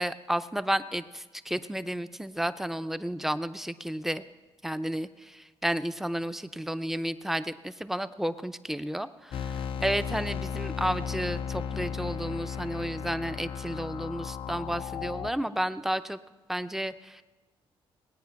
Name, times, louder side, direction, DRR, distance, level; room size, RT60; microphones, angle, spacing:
voice 1, 0.0-4.2 4.6-16.2 16.5-17.2, right 1 dB, 5° right, 11 dB, 0.6 m, -32 dB
sound 1, 9.3-15.3, left 7 dB, 70° left, 0.5 m, -35 dB
19.5 x 9.1 x 5.8 m, 1.2 s
cardioid pair, 105°, 9 cm